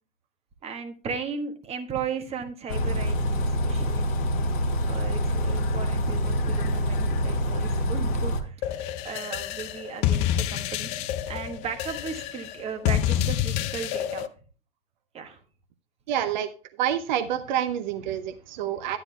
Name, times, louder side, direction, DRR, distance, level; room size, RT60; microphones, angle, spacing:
voice 1, 0.6-4.1 4.8-8.8 9.0-14.3 15.1-15.4, right 6 dB, 20° right, 7 dB, 1.3 m, -36 dB
Bus, 2.7-8.4, equal, 55° left, 1.6 m, -26 dB
sound 1, 8.6-14.3, left 11 dB, 25° left, 0.3 m, -28 dB
voice 2, 16.1-16.5 16.8-19.0, right 10 dB, 50° right, 11 dB, 0.8 m, -27 dB
12.5 x 9.8 x 2.3 m, 0.38 s
figure-of-eight pair, 100°, 29 cm